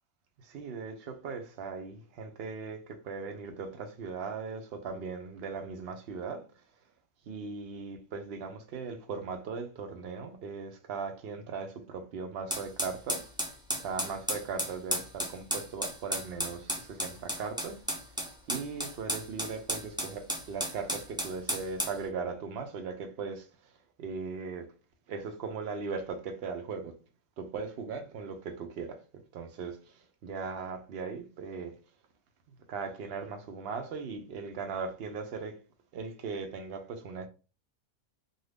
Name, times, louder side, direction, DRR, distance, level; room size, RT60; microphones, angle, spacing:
voice 1, 0.4-6.5 7.3-13.3 13.8-17.8 18.5-23.5 24.0-24.7 25.1-26.9 27.4-29.0 29.3-31.7 32.7-35.6 35.9-37.3, right 5 dB, 60° right, 0.7 m, -38 dB
sound 1, 12.5-22.0, equal, 5° right, 0.4 m, -34 dB
2.5 x 2.3 x 3.3 m
omnidirectional pair, 1.3 m